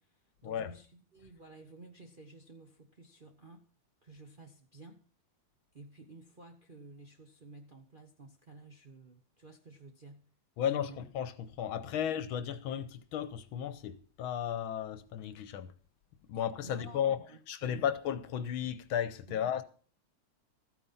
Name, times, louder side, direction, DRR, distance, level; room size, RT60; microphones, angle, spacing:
voice 1, 0.0-3.7 4.0-5.0 5.7-10.2 10.7-11.0 11.9-12.0 16.6-17.9 19.3-19.4, right 2 dB, 40° right, 0.7 m, -53 dB
voice 2, 10.6-15.7 16.3-19.6, left 9 dB, 75° left, 1.6 m, -34 dB
14.0 x 9.2 x 5.6 m
omnidirectional pair, 2.4 m